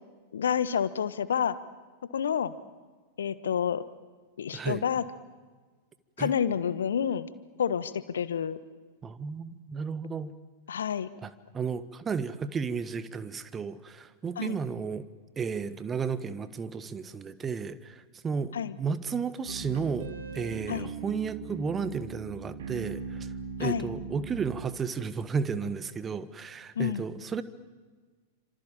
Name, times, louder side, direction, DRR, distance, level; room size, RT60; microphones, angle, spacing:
voice 1, 0.3-1.6 2.1-2.5 3.2-3.8 4.4-5.0 6.2-7.3 7.6-8.6 10.7-11.1 14.4-14.6 18.5-18.7 20.7-20.9 23.6-23.9 26.7-27.0, left 8 dB, 65° left, 14 dB, 1.3 m, -29 dB
voice 2, 4.5-4.8 6.2-6.3 9.0-10.3 11.2-15.0 15.4-23.3 23.6-27.4, right 5 dB, 20° right, 12 dB, 1.5 m, -33 dB
sound 1, 19.5-24.6, right 6 dB, 60° right, 3.0 m, -39 dB
29.5 x 26.5 x 7.4 m, 1.4 s
figure-of-eight pair, 95°, 0 cm